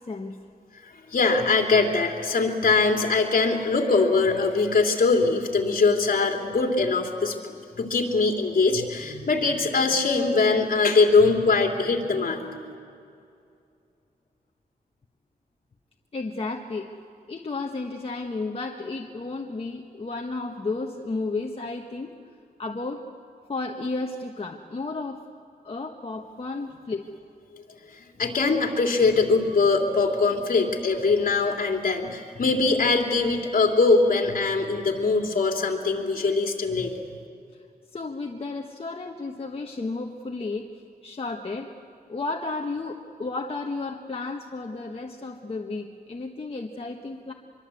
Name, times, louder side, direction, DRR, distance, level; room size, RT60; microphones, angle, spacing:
voice 1, 0.1-0.4 16.1-16.9 17.3-22.1 22.6-23.0 23.5-25.2 25.6-27.0 37.9-40.7 41.0-41.7 42.1-47.3, left 3 dB, 40° left, 1 dB, 1.3 m, -32 dB
voice 2, 0.8-12.6 27.5-27.6 27.9-36.9, left 3 dB, 60° left, 3 dB, 3.0 m, -22 dB
25.0 x 23.5 x 8.4 m, 2.5 s
wide cardioid pair, 130°, 16 cm